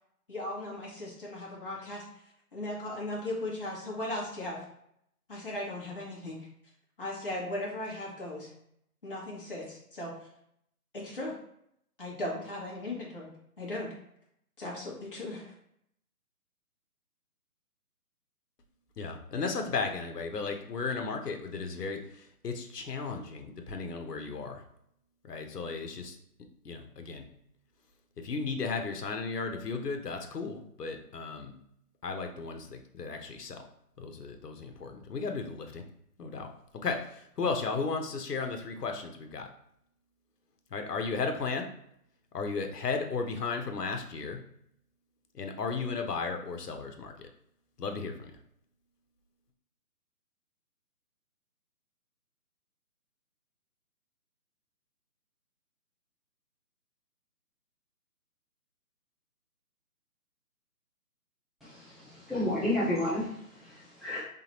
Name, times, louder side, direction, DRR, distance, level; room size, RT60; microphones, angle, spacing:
voice 1, 0.3-2.0 2.5-4.7 5.3-6.4 7.0-8.5 9.0-10.1 10.9-11.4 12.0-13.3 13.6-13.9 14.6-15.5, left 1 dB, 35° left, -5 dB, 1.3 m, -37 dB
voice 2, 19.0-24.6 25.2-26.2 26.6-27.3 28.2-31.5 32.0-33.7 34.0-35.8 36.2-36.5 36.8-39.5 40.7-41.7 42.3-44.4 45.3-47.3 47.8-48.3, left 4 dB, 80° left, 5 dB, 1.0 m, -35 dB
voice 3, 61.6-64.2, left 1 dB, ahead, -11 dB, 0.6 m, -32 dB
3.8 x 3.4 x 2.9 m, 0.72 s
hypercardioid pair, 180°, 47 cm